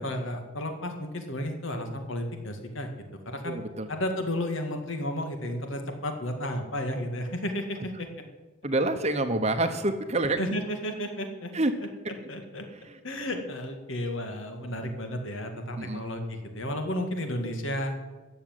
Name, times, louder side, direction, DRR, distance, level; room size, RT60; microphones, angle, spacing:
voice 1, 0.0-2.9 3.3-3.6 3.9-8.1 10.4-11.5 12.3-12.6 13.0-17.9, left 1 dB, 65° left, 5 dB, 2.1 m, -32 dB
voice 2, 3.4-3.9 8.6-10.4 11.5-11.7 15.8-16.0, right 2 dB, 30° right, 8 dB, 1.0 m, -27 dB
14.0 x 7.3 x 9.1 m, 1.2 s
head